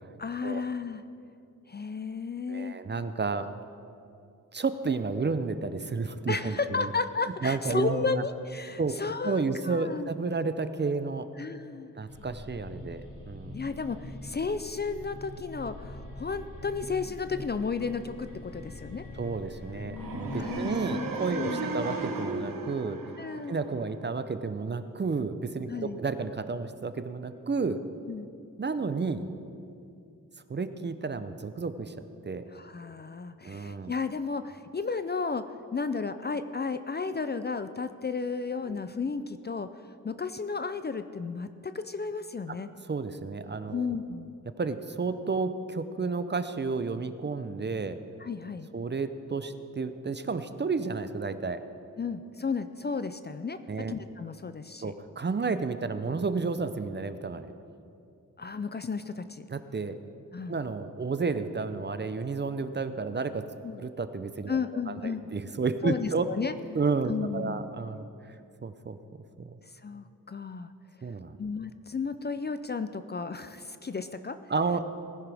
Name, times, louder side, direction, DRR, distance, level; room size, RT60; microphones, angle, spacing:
voice 1, 0.2-1.0 1.7-2.7 6.3-10.1 11.4-11.9 13.5-19.0 20.3-21.7 23.2-23.6 25.7-26.0 28.1-28.3 32.5-39.7 40.0-42.7 43.7-44.3 48.2-48.7 52.0-53.6 53.9-54.9 58.4-59.4 60.3-60.6 63.6-63.8 64.5-65.2 65.8-66.5 67.1-67.7 69.8-70.7 71.4-74.4, left 5 dB, 30° left, 11 dB, 0.4 m, -33 dB
voice 2, 2.5-3.5 4.5-6.9 7.4-8.2 8.8-9.0 9.2-11.3 11.9-13.6 19.1-23.0 23.5-27.8 28.6-29.3 30.5-31.9 32.3-32.5 33.4-33.9 38.7-38.8 42.5-42.6 42.8-44.0 44.6-48.0 48.7-51.6 53.7-53.9 54.8-57.5 59.5-60.0 60.5-63.5 63.8-64.6 64.9-66.3 66.7-68.4 68.6-69.6 71.0-71.4 74.5-74.8, right 4 dB, 35° right, 11 dB, 0.5 m, -31 dB
sound 1, 12.1-20.5, left 2 dB, 80° left, 1.6 m, -43 dB
sound 2, 19.9-24.0, right 3 dB, 85° right, 1.1 m, -35 dB
19.0 x 10.5 x 3.4 m, 2.6 s
wide cardioid pair, 110°, 33 cm